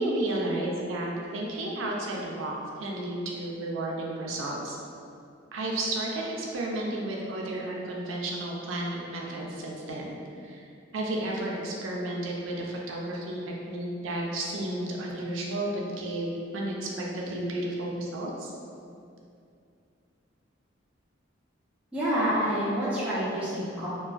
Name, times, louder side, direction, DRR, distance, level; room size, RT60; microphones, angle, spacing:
voice 1, 0.0-2.5 2.8-4.8 5.5-10.7 10.9-18.5, right 1 dB, 90° right, -2 dB, 0.4 m, -32 dB
voice 2, 21.9-23.9, equal, 5° right, -12 dB, 0.5 m, -27 dB
2.5 x 2.2 x 2.3 m, 2.4 s
head